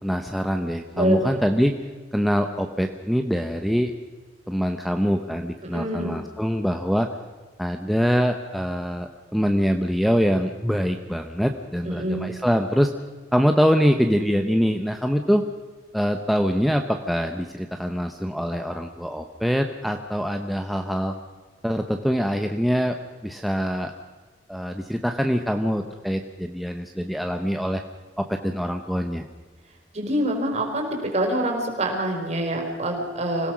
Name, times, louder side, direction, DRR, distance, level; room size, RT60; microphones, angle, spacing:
voice 1, 0.0-1.8 2.1-3.9 4.5-7.1 7.6-12.9 13.3-15.5 15.9-21.1 21.6-23.0 23.2-23.9 24.5-27.8 28.2-29.2, equal, ahead, 4 dB, 0.8 m, -24 dB
voice 2, 0.9-1.3 5.6-6.1 11.8-12.3 29.9-33.5, right 1 dB, 35° right, 1 dB, 4.5 m, -25 dB
25.5 x 17.0 x 6.2 m, 1.4 s
head